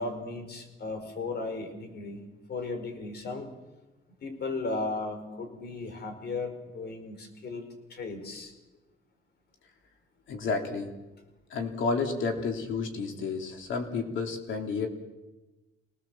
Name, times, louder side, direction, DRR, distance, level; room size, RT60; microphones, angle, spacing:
voice 1, 0.0-3.5 4.2-8.5, left 3 dB, 55° left, 6 dB, 4.9 m, -36 dB
voice 2, 10.3-10.9 11.5-14.9, left 4 dB, 75° left, 4 dB, 3.5 m, -31 dB
26.5 x 19.0 x 7.5 m, 1.1 s
cardioid pair, 90°, 20 cm